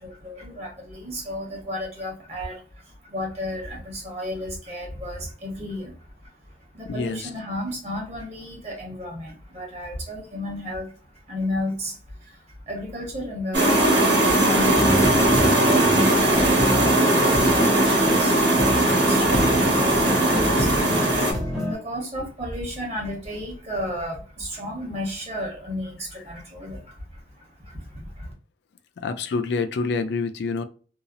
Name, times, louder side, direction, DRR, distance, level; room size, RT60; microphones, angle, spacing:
voice 1, 0.0-5.9 6.2-6.3 6.7-10.9 11.3-21.0 21.4-28.3, left 1 dB, 35° right, -1 dB, 1.0 m, -33 dB
voice 2, 6.8-7.3 29.0-30.6, left 4 dB, 65° left, 9 dB, 0.3 m, -27 dB
sound 1, 13.5-21.3, right 1 dB, 70° right, 1.1 m, -19 dB
sound 2, 14.7-21.7, equal, ahead, 0.7 m, -27 dB
2.8 x 2.0 x 2.4 m, 0.40 s
head